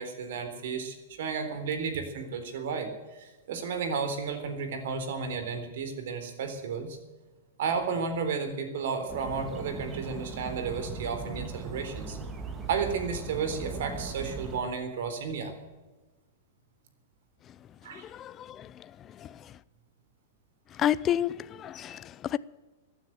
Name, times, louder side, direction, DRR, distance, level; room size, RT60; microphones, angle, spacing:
voice 1, 0.0-7.0 7.6-12.2 12.7-15.5 17.8-18.0, right 5 dB, 70° right, 8 dB, 3.8 m, -33 dB
sound 1, 9.1-14.6, right 3 dB, 20° right, 1.8 m, -39 dB
voice 2, 17.9-18.7 19.2-19.3 20.8-22.4, left 10 dB, 25° left, 17 dB, 0.5 m, -30 dB
15.5 x 9.8 x 9.3 m, 1.2 s
hypercardioid pair, 145°, 0 cm